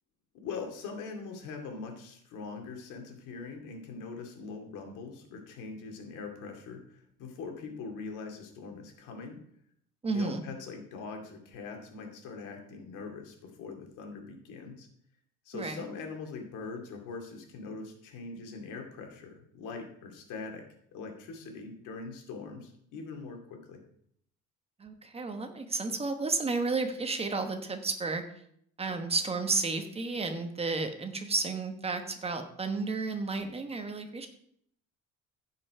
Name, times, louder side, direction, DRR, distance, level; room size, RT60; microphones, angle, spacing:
voice 1, 0.3-9.4 10.1-14.9 15.4-20.6 20.9-23.8, left 4 dB, 85° left, 3 dB, 2.5 m, -42 dB
voice 2, 10.0-10.4 15.5-15.8 24.8-28.2 28.8-34.3, right 3 dB, 20° right, 6 dB, 1.1 m, -32 dB
15.5 x 5.6 x 4.8 m, 0.69 s
cardioid pair, 155°, 30 cm